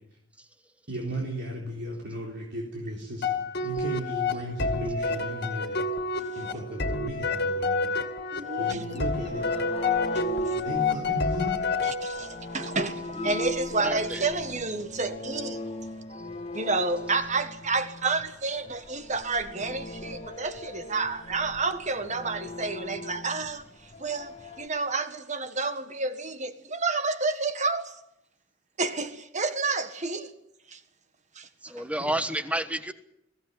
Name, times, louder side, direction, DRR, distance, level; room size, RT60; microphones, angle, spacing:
voice 1, 0.9-5.8 6.4-8.0 8.6-9.4 10.6-11.6 32.0-32.1, equal, 60° right, 3.9 m, -35 dB
sound 1, 3.2-12.5, left 3 dB, 55° left, 2.2 m, -29 dB
voice 2, 8.3-8.8 10.4-10.5 11.8-15.6 16.5-23.6 24.0-28.0 28.8-30.3 30.7-30.8 31.3-31.5, right 3 dB, 40° right, 1.7 m, -30 dB
sound 2, 8.8-24.7, left 2 dB, 30° left, 1.7 m, -39 dB
voice 3, 13.8-14.2 31.6-32.9, right 1 dB, 5° right, 1.2 m, -30 dB
21.5 x 16.5 x 9.8 m
head